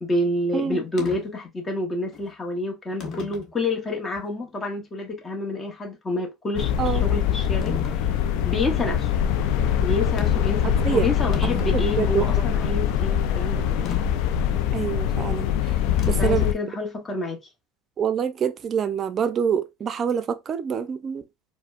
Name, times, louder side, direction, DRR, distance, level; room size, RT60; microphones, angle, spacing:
voice 1, 0.0-8.0 8.4-9.1 9.8-13.9 16.2-17.4, left 2 dB, 25° left, 1.0 m, -28 dB
sound 1, 1.0-1.2 2.1-2.3 3.0-3.5 4.2-4.3 7.6-8.0 10.2-10.5 10.9-11.0 11.2-12.3 13.9-14.0 16.0-16.4, left 5 dB, 50° left, 0.9 m, -35 dB
sound 2, 6.6-16.5, left 9 dB, 70° left, 0.4 m, -23 dB
voice 2, 11.7-12.4 14.7-15.5 16.1-16.5 18.0-21.2, right 8 dB, 40° right, 0.5 m, -26 dB
4.2 x 2.1 x 2.4 m
supercardioid pair, 90°, 0 cm